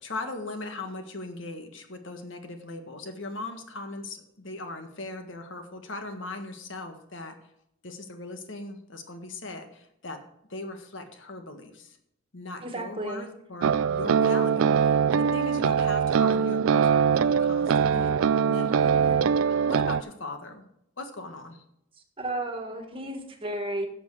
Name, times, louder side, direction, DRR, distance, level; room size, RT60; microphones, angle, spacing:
voice 1, 0.0-7.4 7.8-10.2 10.5-12.0 12.3-19.2 19.5-20.7 21.0-21.6, left 2 dB, 65° left, 6 dB, 1.6 m, -39 dB
voice 2, 12.6-13.3 18.8-19.3 22.2-23.9, right 1 dB, 25° right, 4 dB, 1.8 m, -33 dB
sound 1, 13.6-20.0, right 7 dB, 80° right, 0.4 m, -22 dB
11.5 x 7.5 x 4.9 m, 0.77 s
head